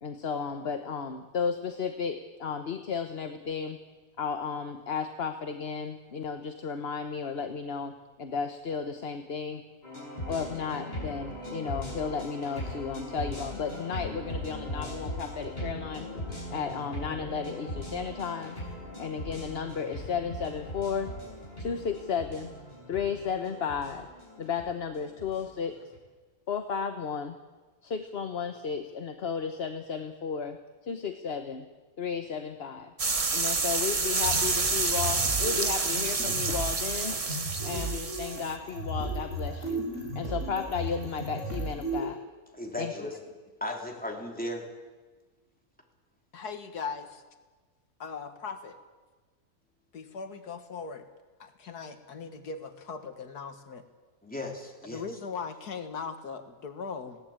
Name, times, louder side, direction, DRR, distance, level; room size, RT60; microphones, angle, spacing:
voice 1, 0.0-3.8 4.2-9.6 10.3-16.1 16.5-18.6 19.0-21.2 21.6-22.5 22.9-24.1 24.4-25.9 26.5-27.4 27.8-31.7 32.0-32.9 33.3-37.2 37.6-39.9 40.1-42.2 42.8-43.1, left 6 dB, 45° left, 7 dB, 1.1 m, -34 dB
sound 1, 9.8-26.0, left 1 dB, 25° left, 6.8 m, -39 dB
sound 2, 33.0-38.5, right 4 dB, 25° right, 0.9 m, -28 dB
sound 3, 34.2-42.1, right 2 dB, 50° right, 8.5 m, -35 dB
voice 2, 42.5-43.1 43.6-44.7 54.2-55.0, left 1 dB, 5° left, 0 dB, 3.1 m, -36 dB
voice 3, 46.3-47.2 48.0-48.8 49.9-51.1 51.4-53.8 54.9-57.2, left 5 dB, 80° left, 8 dB, 2.0 m, -39 dB
20.0 x 16.5 x 8.9 m, 1.3 s
omnidirectional pair, 1.6 m